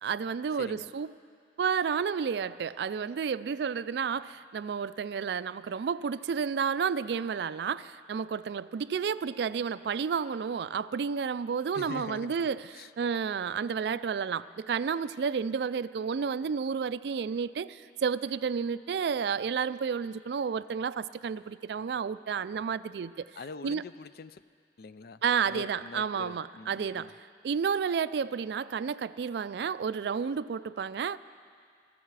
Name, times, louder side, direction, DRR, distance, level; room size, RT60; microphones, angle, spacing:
voice 1, 0.0-1.1 1.6-23.2 23.6-23.8 25.2-27.1 27.4-31.2, right 6 dB, 65° right, 16 dB, 0.3 m, -31 dB
voice 2, 0.6-0.9 11.7-12.5 12.7-12.9 23.3-24.4 24.8-27.1, left 5 dB, 55° left, 14 dB, 0.4 m, -44 dB
19.0 x 14.5 x 4.8 m, 2.2 s
head